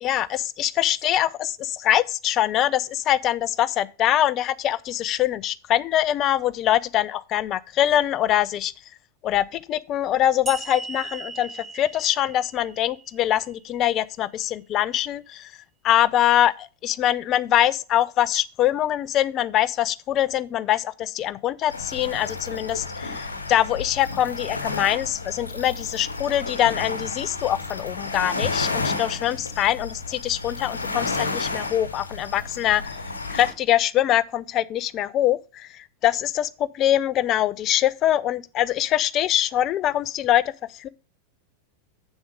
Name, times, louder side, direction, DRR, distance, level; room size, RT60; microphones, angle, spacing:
voice 1, 0.0-8.7 9.2-15.5 15.8-33.0 33.3-40.4 40.7-40.9, left 12 dB, 35° left, 0.5 m, -23 dB
sound 1, 10.5-13.8, right 4 dB, 10° right, 0.7 m, -39 dB
sound 2, 21.7-33.5, left 3 dB, 75° left, 1.0 m, -31 dB
7.2 x 7.1 x 5.1 m
figure-of-eight pair, 90°, 0 cm